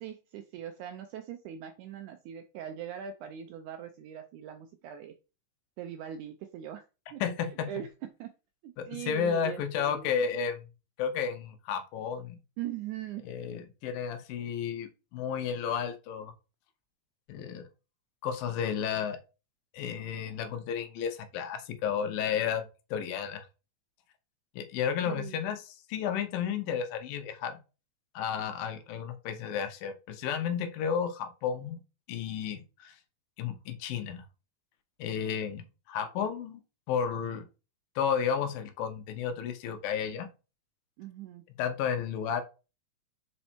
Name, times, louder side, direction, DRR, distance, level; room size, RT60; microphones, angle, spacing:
voice 1, 0.0-5.1 5.8-6.9 7.1-7.2 7.7-8.3 8.6-10.1 12.6-13.3 25.1-25.4 41.0-41.4, right 10 dB, 80° right, 8 dB, 1.8 m, -41 dB
voice 2, 7.2-7.7 8.8-10.6 11.0-12.4 13.2-16.3 17.3-17.6 18.2-19.2 19.7-23.5 24.6-27.6 28.2-31.8 32.1-33.0 33.4-34.2 35.0-36.6 36.9-37.4 38.0-40.3 41.6-42.4, left 7 dB, 85° left, 9 dB, 2.6 m, -32 dB
5.5 x 4.4 x 4.3 m, 0.31 s
omnidirectional pair, 4.0 m